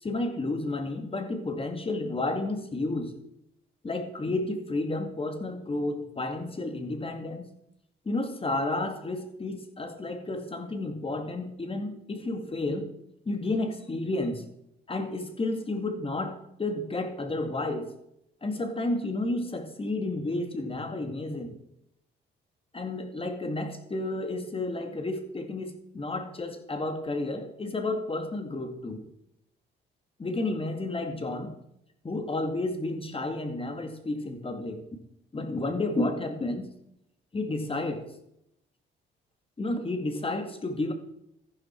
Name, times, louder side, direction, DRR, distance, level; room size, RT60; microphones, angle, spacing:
voice 1, 0.0-3.1 3.8-7.5 8.1-12.9 13.3-14.4 14.9-17.9 18.4-21.5 22.7-29.0 30.2-31.5 32.0-34.8 35.3-36.7 37.3-38.0 39.6-40.9, left 2 dB, 30° left, 6 dB, 2.3 m, -31 dB
14.5 x 12.0 x 4.7 m, 0.77 s
cardioid pair, 90°, 20 cm